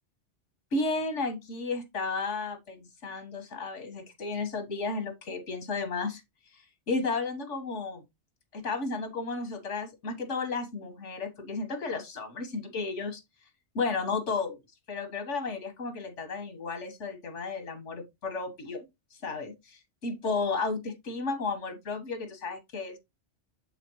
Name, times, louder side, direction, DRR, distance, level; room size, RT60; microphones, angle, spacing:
voice 1, 0.7-6.2 6.5-8.0 8.5-13.2 13.8-14.6 14.9-18.9 19.2-23.0, left 3 dB, 75° left, 1.8 m, -33 dB
7.3 x 5.0 x 3.1 m
omnidirectional pair, 1.2 m